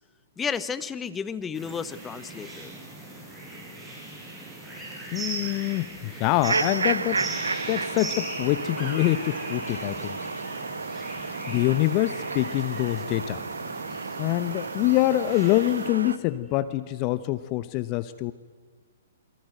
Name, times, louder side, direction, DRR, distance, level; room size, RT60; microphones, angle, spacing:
voice 1, 0.4-2.7, left 6 dB, 15° left, 13 dB, 1.2 m, -32 dB
sound 1, 1.5-15.9, right 2 dB, 10° right, 7.0 m, -39 dB
voice 2, 5.1-10.2 11.2-13.4 14.2-18.3, left 17 dB, 35° left, 14 dB, 1.0 m, -25 dB
sound 2, 6.4-16.2, right 4 dB, 75° right, 1.3 m, -32 dB
27.5 x 23.5 x 9.2 m, 1.5 s
figure-of-eight pair, 120°, 0 cm